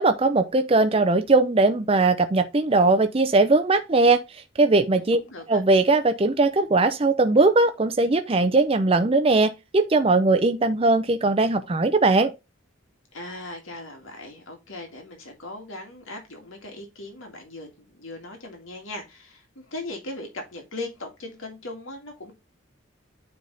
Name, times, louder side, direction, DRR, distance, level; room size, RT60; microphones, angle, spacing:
voice 1, 0.0-4.2 4.6-5.2 5.5-12.3, right 3 dB, 30° right, 0.5 m, -20 dB
voice 2, 4.9-5.6 13.1-22.3, left 2 dB, 80° left, 2.2 m, -39 dB
9.3 x 3.6 x 3.9 m
head